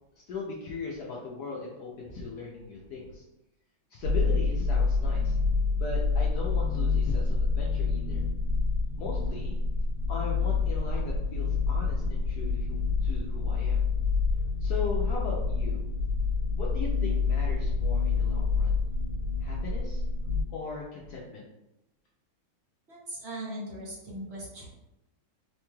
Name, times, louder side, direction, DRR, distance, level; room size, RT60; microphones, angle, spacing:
voice 1, 0.2-3.2 3.9-5.4 5.7-8.3 9.0-9.6 10.1-13.8 14.6-15.8 16.5-18.8 19.4-20.0 20.5-21.5, left 3 dB, 75° left, -3 dB, 0.9 m, -38 dB
sound 1, 4.0-20.4, left 4 dB, 65° right, 2.0 m, -27 dB
voice 2, 22.9-24.7, right 1 dB, 45° right, -4 dB, 0.9 m, -39 dB
4.6 x 3.0 x 2.2 m, 0.91 s
omnidirectional pair, 2.3 m